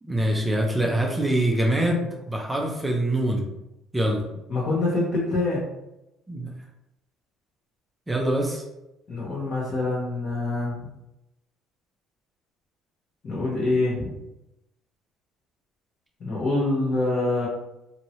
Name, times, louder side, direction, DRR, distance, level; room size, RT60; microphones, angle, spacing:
voice 1, 0.0-3.5 3.9-4.2 6.3-6.5 8.1-8.6, right 1 dB, 10° right, 0 dB, 0.5 m, -24 dB
voice 2, 4.5-5.7 9.1-10.8 13.2-14.1 16.2-17.5, left 2 dB, 45° left, -6 dB, 1.0 m, -25 dB
2.9 x 2.7 x 2.8 m, 0.89 s
cardioid pair, 115°, 0 cm